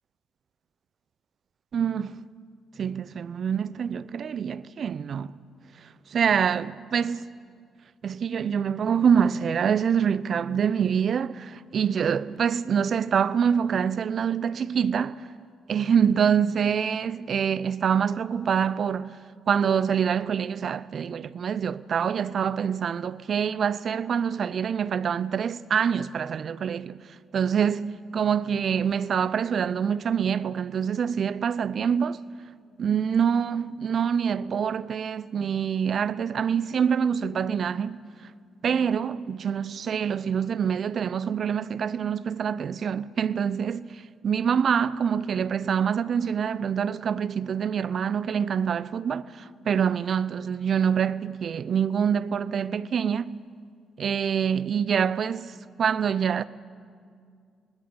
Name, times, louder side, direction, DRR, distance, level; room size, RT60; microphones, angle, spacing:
voice 1, 1.7-2.2 2.8-5.3 6.1-7.3 8.0-15.3 15.7-19.2 19.5-27.0 27.3-32.2 32.8-38.0 38.6-43.8 44.2-53.4 54.0-56.4, right 7 dB, 55° right, 0.7 m, -25 dB
26.5 x 20.0 x 7.2 m
hypercardioid pair, 45°, 0 cm